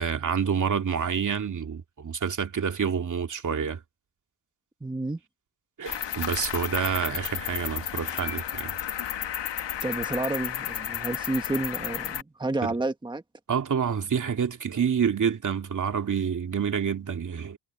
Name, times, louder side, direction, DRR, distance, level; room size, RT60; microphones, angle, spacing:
voice 1, 0.0-3.8 5.8-8.7 12.6-12.7 13.5-17.6, right 7 dB, 35° right, 2.5 m, -28 dB
voice 2, 4.8-5.2 9.8-13.2, right 2 dB, 10° right, 1.6 m, -30 dB
Cricket, 5.9-12.2, left 10 dB, 60° left, 1.7 m, -32 dB
cardioid pair, 120°, 49 cm